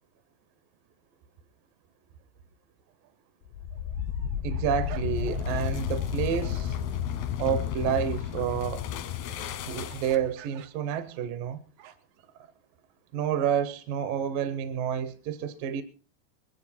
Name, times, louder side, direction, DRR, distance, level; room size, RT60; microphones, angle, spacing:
sound 1, 2.9-3.1 3.6-6.2 6.4-6.6 9.9-12.2, right 11 dB, 90° right, 3.1 m, -49 dB
sound 2, 3.5-10.3, left 9 dB, 90° left, 3.1 m, -32 dB
voice 1, 4.4-6.8 7.4-8.9 9.7-11.6 13.1-15.8, right 9 dB, 75° right, 2.3 m, -29 dB
sound 3, 4.8-10.5, equal, 50° right, 0.3 m, -53 dB
21.5 x 12.0 x 4.3 m
omnidirectional pair, 4.3 m